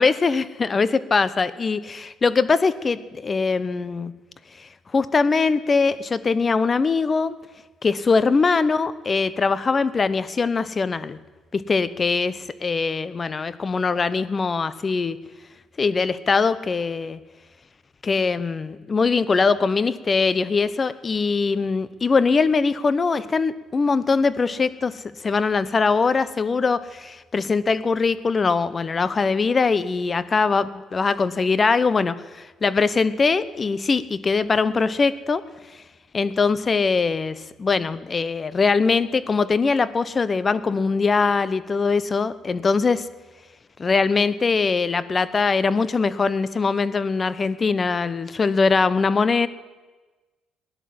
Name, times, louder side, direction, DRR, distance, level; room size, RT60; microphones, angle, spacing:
voice 1, 0.0-4.1 4.6-7.4 7.8-11.2 11.5-15.2 15.8-17.2 18.0-35.4 36.1-43.1 43.8-49.5, left 4 dB, 35° left, 16 dB, 0.9 m, -22 dB
16.5 x 11.0 x 7.8 m, 1.2 s
supercardioid pair, 75°, 0 cm